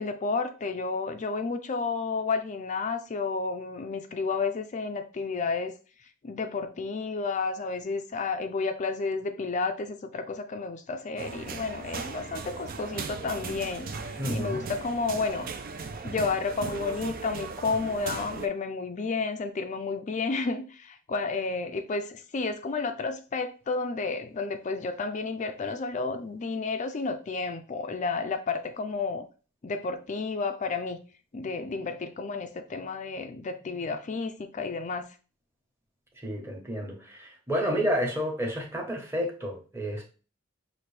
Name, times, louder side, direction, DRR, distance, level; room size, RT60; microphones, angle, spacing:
voice 1, 0.0-5.8 6.2-15.5 16.0-29.2 29.6-31.0 31.3-35.2, left 4 dB, 40° left, 0.4 m, -31 dB
sound 1, 11.2-18.5, right 4 dB, 45° right, 0.5 m, -38 dB
voice 2, 14.2-14.6 36.2-40.0, equal, 15° right, 1.1 m, -30 dB
5.8 x 2.6 x 3.3 m
head